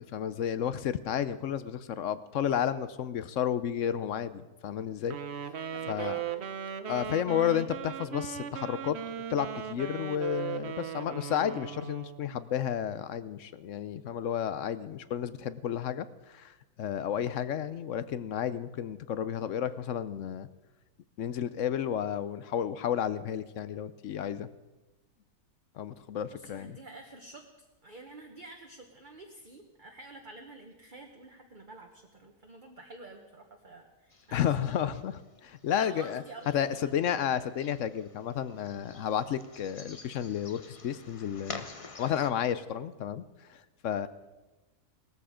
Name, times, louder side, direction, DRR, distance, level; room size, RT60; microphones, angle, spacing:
voice 1, 0.0-5.2 5.9-6.2 6.9-9.0 9.3-20.5 21.2-24.5 25.8-26.8 34.3-36.2 36.5-41.6 42.0-43.2 43.5-43.6 43.8-44.1, left 9 dB, 65° left, 14 dB, 0.8 m, -32 dB
Wind instrument woodwind instrument, 5.0-12.3, right 9 dB, 55° right, 0.9 m, -38 dB
voice 2, 5.4-6.5 26.3-34.5 35.8-36.6 36.8-36.9, right 2 dB, 35° right, 2 dB, 1.2 m, -49 dB
sound 1, 34.1-42.3, left 3 dB, 30° left, 0.7 m, -49 dB
18.0 x 13.5 x 5.0 m, 1.1 s
omnidirectional pair, 1.7 m